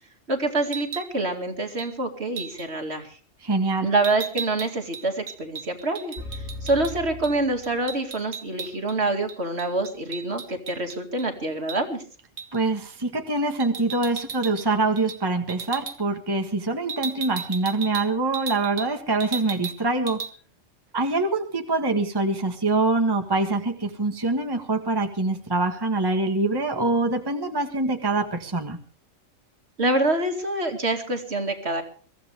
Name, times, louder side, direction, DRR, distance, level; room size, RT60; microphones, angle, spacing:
voice 1, 0.3-3.2 3.8-6.2 6.6-12.0 29.8-31.8, right 2 dB, 55° right, 5 dB, 2.6 m, -26 dB
sound 1, 0.6-1.1 1.8-1.9 2.4-2.7 4.0-6.9 7.2-7.4 7.6-9.0 9.3-11.3 11.7-11.8 12.4-12.6 13.6-14.7 15.0-15.2 15.5-16.0 16.9-18.9 19.2-19.8 20.1-20.3, right 6 dB, 85° right, 1.8 m, -35 dB
voice 2, 3.4-3.9 12.5-20.2 20.9-28.8, right 2 dB, 20° right, 5 dB, 1.6 m, -24 dB
sound 2, 6.2-8.3, left 2 dB, 85° left, 4.2 m, -38 dB
23.5 x 15.5 x 3.5 m, 0.40 s
omnidirectional pair, 1.4 m